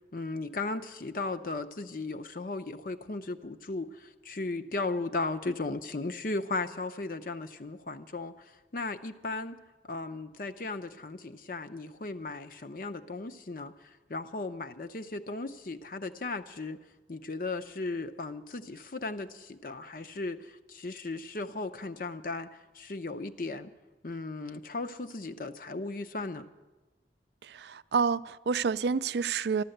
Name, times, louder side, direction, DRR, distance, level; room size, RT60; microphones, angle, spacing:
voice 1, 0.1-9.6 9.9-16.8 17.1-23.7 24.0-26.5, left 3 dB, 50° left, 8 dB, 0.7 m, -36 dB
voice 2, 27.4-29.6, right 5 dB, 70° right, 16 dB, 0.4 m, -29 dB
13.5 x 12.5 x 7.9 m, 1.2 s
head